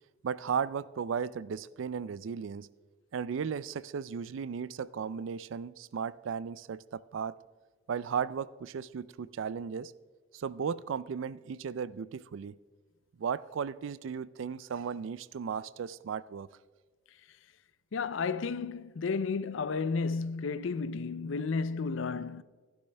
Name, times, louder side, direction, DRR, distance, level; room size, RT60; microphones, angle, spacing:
voice 1, 0.2-2.7 3.1-7.4 7.9-9.9 10.3-12.5 13.2-16.5, right 6 dB, 70° right, 0.4 m, -35 dB
voice 2, 17.9-22.4, left 4 dB, 70° left, 0.4 m, -32 dB
13.0 x 11.5 x 3.4 m
head